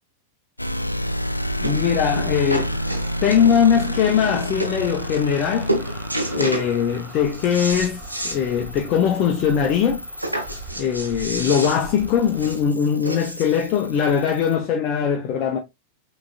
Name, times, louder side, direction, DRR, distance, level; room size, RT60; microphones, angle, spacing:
sound 1, 0.6-14.6, equal, 85° left, 0.3 m, -31 dB
sound 2, 0.6-12.7, right 2 dB, 20° right, 2.7 m, -40 dB
voice 1, 1.6-2.8 3.2-5.7 6.3-10.0 10.8-15.6, left 8 dB, 35° left, 0.7 m, -21 dB
sound 3, 1.6-1.9 2.2-3.8 4.3-4.4 4.6-4.8 5.1-5.4 5.7-6.7 7.1-8.4 8.8-8.9 9.2-9.3 10.2-13.6 14.5-14.6, right 1 dB, 85° right, 1.0 m, -29 dB
6.1 x 3.2 x 2.3 m
figure-of-eight pair, 90°, 0 cm